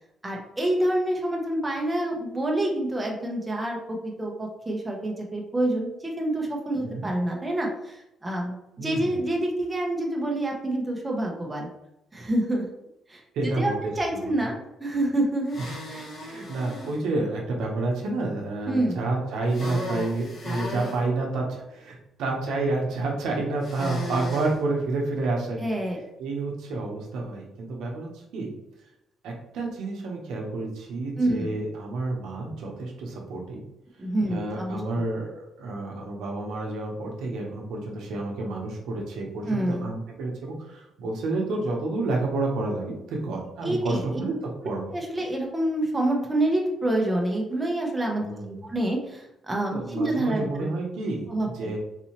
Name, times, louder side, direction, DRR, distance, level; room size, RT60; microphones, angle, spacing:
voice 1, 0.2-11.7 12.1-12.7 13.1-16.1 18.7-19.0 25.6-26.0 31.2-31.6 34.0-35.0 39.5-39.9 43.6-44.0 44.9-48.2 48.6-50.7 51.3-51.7, right 1 dB, 20° right, 0 dB, 0.9 m, -27 dB
voice 2, 8.8-9.1 13.3-14.2 15.7-15.8 16.2-25.6 26.2-28.5 29.2-33.6 34.2-44.3 44.6-44.8 48.2-48.6 49.7-51.8, right 2 dB, 85° right, -1 dB, 0.8 m, -29 dB
sound 1, 15.5-17.0 19.5-21.0 23.6-24.5, left 1 dB, 50° left, 1.4 m, -35 dB
4.1 x 2.7 x 2.9 m, 0.85 s
cardioid pair, 90°, 0 cm